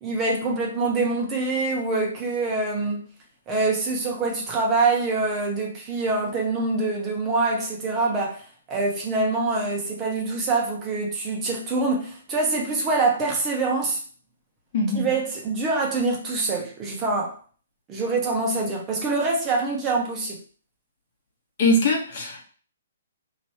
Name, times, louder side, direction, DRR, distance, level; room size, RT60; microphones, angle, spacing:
voice 1, 0.0-3.1 3.5-14.0 14.9-17.4 17.9-20.4, right 3 dB, 20° right, 1.1 m, -25 dB
voice 2, 14.7-15.1 21.6-22.4, left 1 dB, 50° left, 1.4 m, -22 dB
3.0 x 3.0 x 4.4 m
hypercardioid pair, 145°, 0 cm